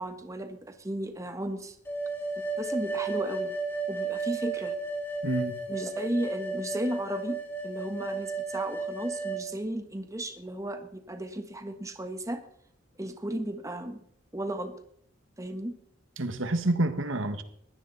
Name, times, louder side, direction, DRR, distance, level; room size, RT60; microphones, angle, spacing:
voice 1, 0.0-1.8 2.6-3.6 3.9-4.8 5.7-12.5 13.0-14.0 14.3-14.8 15.4-15.8, right 1 dB, 15° right, 7 dB, 1.4 m, -34 dB
sound 1, 1.9-9.4, right 3 dB, 10° left, 3.9 m, -33 dB
voice 2, 5.2-5.6 16.2-17.4, right 2 dB, 75° right, 9 dB, 1.7 m, -28 dB
21.0 x 15.5 x 4.2 m, 0.67 s
head